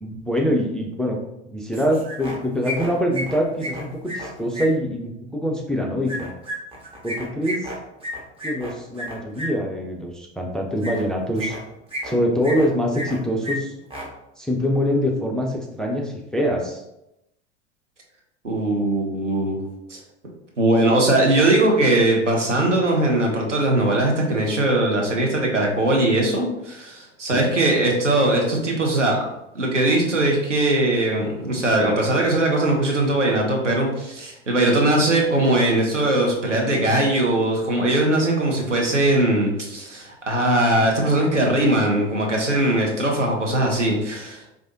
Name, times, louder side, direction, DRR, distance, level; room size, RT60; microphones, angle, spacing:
voice 1, 0.0-1.2 1.4-6.3 7.0-7.7 8.4-11.6 12.0-13.7 14.4-16.8 27.3-27.5, equal, ahead, 0 dB, 0.3 m, -24 dB
sound 1, 1.7-2.4 2.6-4.7 6.1-9.5 10.8-11.0 11.4-12.1 12.4-13.2 13.4-13.5 13.8-14.1, equal, 15° right, 1.0 m, -32 dB
voice 2, 18.4-19.6 19.9-20.0 20.6-29.2 29.5-44.4, right 1 dB, 90° right, 0 dB, 0.9 m, -20 dB
4.7 x 2.4 x 2.6 m, 0.86 s
figure-of-eight pair, 80°, 35 cm